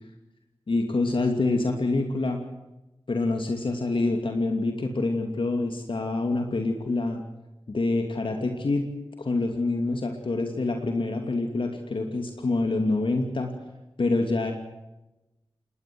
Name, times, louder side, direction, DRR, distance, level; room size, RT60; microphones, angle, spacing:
voice 1, 0.7-2.4 3.1-7.2 7.7-8.9 9.2-13.5 14.0-14.5, left 2 dB, 65° left, 4 dB, 2.7 m, -26 dB
20.5 x 19.5 x 7.8 m, 0.99 s
cardioid pair, 50°, 10 cm